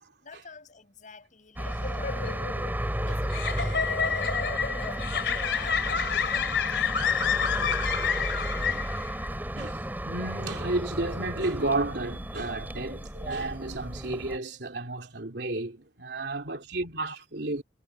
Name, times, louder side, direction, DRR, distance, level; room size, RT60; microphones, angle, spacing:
voice 1, 0.2-2.6 3.0-5.1 5.5-9.2, left 4 dB, 45° left, 7.7 m, -47 dB
sound 1, 1.6-14.4, right 1 dB, 10° right, 2.9 m, -33 dB
sound 2, 1.7-9.3, left 7 dB, 75° left, 3.1 m, -29 dB
voice 2, 9.5-17.6, right 2 dB, 65° right, 3.3 m, -32 dB
head